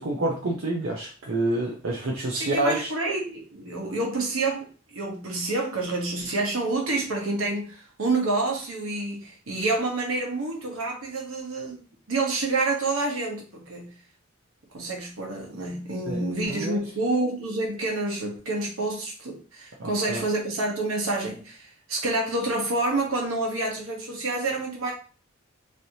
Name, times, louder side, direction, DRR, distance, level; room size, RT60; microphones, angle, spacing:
voice 1, 0.0-2.9 16.1-16.2 16.5-16.8 19.8-20.2, right 1 dB, 70° right, -2 dB, 0.6 m, -28 dB
voice 2, 2.3-13.9 14.7-24.9, right 2 dB, 85° right, -1 dB, 1.1 m, -28 dB
3.2 x 2.7 x 2.7 m, 0.38 s
head